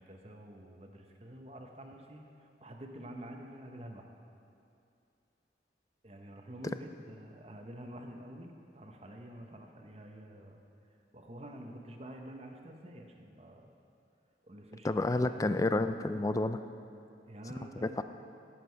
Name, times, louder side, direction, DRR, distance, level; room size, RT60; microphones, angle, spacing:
voice 1, 0.0-4.1 6.0-10.6 11.1-13.8 14.4-15.7 17.3-18.0, right 1 dB, 35° right, 3 dB, 1.0 m, -48 dB
voice 2, 14.8-16.6 17.8-18.0, left 2 dB, 20° left, 10 dB, 0.4 m, -30 dB
17.5 x 7.7 x 4.6 m, 2.5 s
head